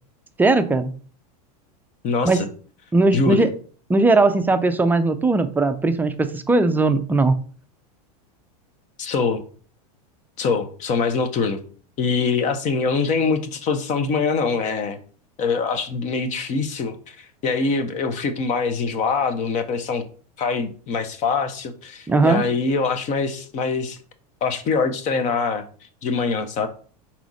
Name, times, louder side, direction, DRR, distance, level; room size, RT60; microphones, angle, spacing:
voice 1, 0.4-0.9 2.3-2.5 2.9-3.5 3.9-7.4 22.1-22.4, right 3 dB, 10° right, 9 dB, 0.4 m, -18 dB
voice 2, 2.0-2.5 3.1-3.5 9.0-9.4 10.4-11.6 12.0-15.0 15.4-20.0 20.4-24.0 24.4-25.6 26.0-26.7, left 4 dB, 40° left, 9 dB, 0.9 m, -23 dB
6.0 x 4.3 x 4.0 m, 0.42 s
supercardioid pair, 130°, 20 cm